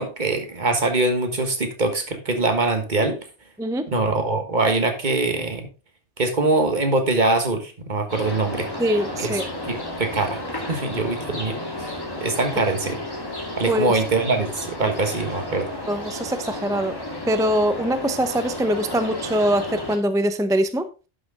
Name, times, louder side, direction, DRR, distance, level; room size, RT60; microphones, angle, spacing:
voice 1, 0.0-3.2 3.9-5.7 6.2-8.7 9.2-9.4 9.6-10.4 10.7-11.6 12.2-13.0 13.6-15.7, right 2 dB, 45° right, 1.5 m, -23 dB
voice 2, 3.6-3.9 8.8-9.5 13.7-13.9 15.9-16.9 17.3-20.9, equal, 5° right, 0.4 m, -23 dB
sound 1, 8.1-20.0, left 1 dB, 20° left, 1.9 m, -32 dB
11.0 x 6.2 x 3.6 m
omnidirectional pair, 1.1 m